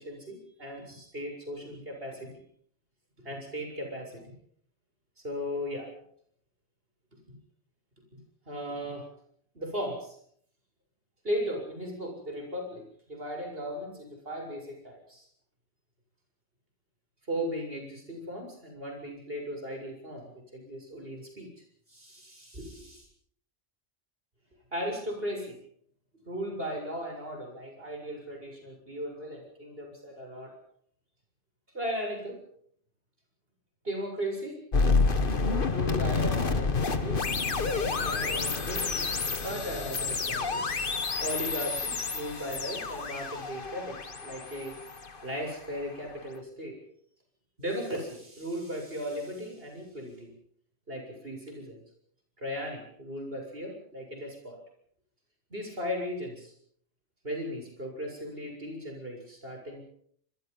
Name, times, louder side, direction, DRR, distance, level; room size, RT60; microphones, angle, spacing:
voice 1, 0.0-2.3 3.2-4.3 5.2-5.9 8.5-9.0 9.5-10.2 11.2-15.3 17.3-21.5 21.9-23.1 24.7-25.6 26.3-30.5 31.7-32.4 33.8-34.6 35.7-40.6 41.2-44.8 45.2-46.8 47.6-50.3 50.9-51.8 52.4-54.6 55.5-56.5 57.2-59.8, equal, 55° right, 3 dB, 7.6 m, -37 dB
sound 1, 34.7-45.8, left 4 dB, 50° left, 1.6 m, -29 dB
26.0 x 22.5 x 5.6 m, 0.64 s
omnidirectional pair, 1.2 m